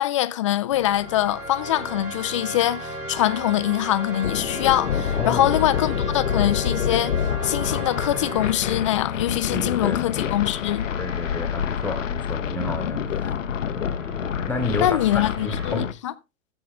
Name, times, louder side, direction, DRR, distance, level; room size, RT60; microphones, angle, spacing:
voice 1, 0.0-7.1 7.4-10.9 14.8-16.1, left 13 dB, 25° left, 0.4 m, -23 dB
sound 1, 0.7-15.8, right 1 dB, 85° right, 4.5 m, -36 dB
sound 2, 4.2-15.9, left 8 dB, 60° left, 0.8 m, -27 dB
voice 2, 9.5-10.0 11.0-13.4 13.7-14.0 14.5-15.9, left 3 dB, 5° left, 1.3 m, -30 dB
14.5 x 7.3 x 3.3 m
figure-of-eight pair, 110°, 43 cm